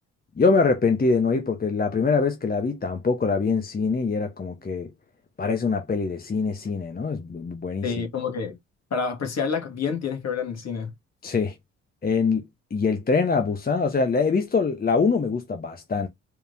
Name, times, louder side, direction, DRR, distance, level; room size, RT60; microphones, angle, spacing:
voice 1, 0.4-4.9 5.4-7.9 11.2-11.6 12.0-12.4 12.7-16.1, left 4 dB, 25° left, 1.0 m, -24 dB
voice 2, 7.8-8.6 8.9-10.9, left 5 dB, 45° left, 2.1 m, -28 dB
4.7 x 3.4 x 2.7 m
hypercardioid pair, 45°, 36 cm